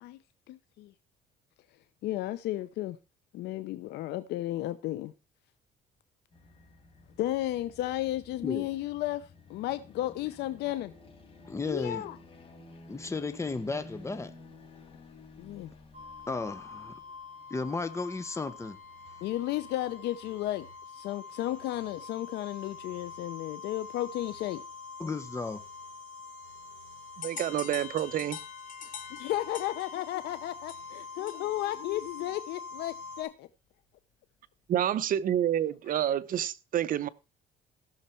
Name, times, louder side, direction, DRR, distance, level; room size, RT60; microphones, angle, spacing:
voice 1, 0.5-0.9 2.0-3.0 3.3-5.1 7.2-10.9 11.7-12.2 15.4-15.7 19.2-24.6 28.8-33.5 35.9-36.4, left 14 dB, 80° left, 0.7 m, -34 dB
sound 1, 6.3-19.8, left 2 dB, 35° left, 4.7 m, -53 dB
voice 2, 11.4-12.0 12.9-14.3 16.3-16.9 17.5-18.8 25.0-25.6, left 3 dB, 15° left, 1.1 m, -34 dB
sound 2, 15.9-33.2, left 4 dB, 35° right, 4.4 m, -45 dB
sound 3, 27.2-31.7, left 8 dB, 50° left, 1.6 m, -45 dB
voice 3, 27.2-28.4 34.7-37.1, right 10 dB, 55° right, 0.8 m, -28 dB
15.5 x 6.7 x 4.5 m
cardioid pair, 110°, 17 cm